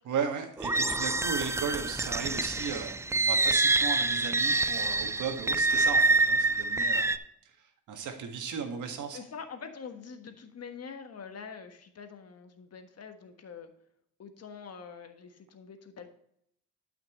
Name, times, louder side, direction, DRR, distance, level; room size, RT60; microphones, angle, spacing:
voice 1, 0.1-7.1 7.9-9.2, right 6 dB, 75° right, 5 dB, 1.7 m, -35 dB
sound 1, 0.6-7.2, right 3 dB, 10° right, 0.4 m, -26 dB
voice 2, 9.1-13.7 14.2-16.1, left 6 dB, 55° left, 7 dB, 1.4 m, -45 dB
12.0 x 5.9 x 3.1 m, 0.72 s
cardioid pair, 90°, 30 cm